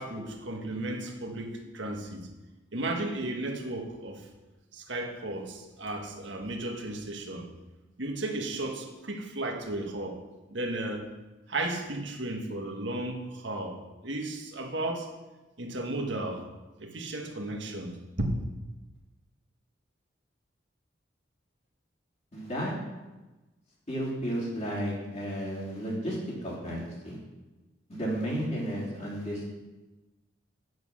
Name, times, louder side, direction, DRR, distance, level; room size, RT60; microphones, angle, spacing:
voice 1, 0.0-2.3 2.7-4.3 4.7-7.5 8.0-10.2 10.5-11.1 11.5-15.1 15.6-16.5 16.8-18.3, right 2 dB, 65° right, 2 dB, 1.5 m, -34 dB
voice 2, 22.3-22.7 23.9-27.2 27.9-29.5, equal, 35° left, -5 dB, 3.3 m, -33 dB
9.5 x 7.9 x 6.3 m, 1.1 s
head